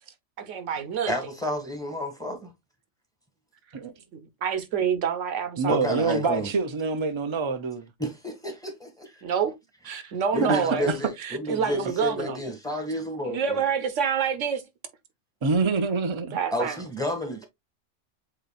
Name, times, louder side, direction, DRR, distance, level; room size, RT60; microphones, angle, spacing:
voice 1, 0.4-1.1 4.1-6.1 9.2-9.5 9.8-10.9 11.2-12.4 13.2-14.6 16.3-16.8, right 7 dB, 85° right, 1.1 m, -27 dB
voice 2, 1.0-2.5 5.7-6.5 8.0-9.2 10.0-10.1 10.3-13.6 16.5-17.5, equal, 5° left, 1.4 m, -31 dB
voice 3, 5.6-7.8 10.4-10.9 15.4-16.4, right 4 dB, 55° right, 0.3 m, -26 dB
7.8 x 2.8 x 2.3 m
omnidirectional pair, 1.2 m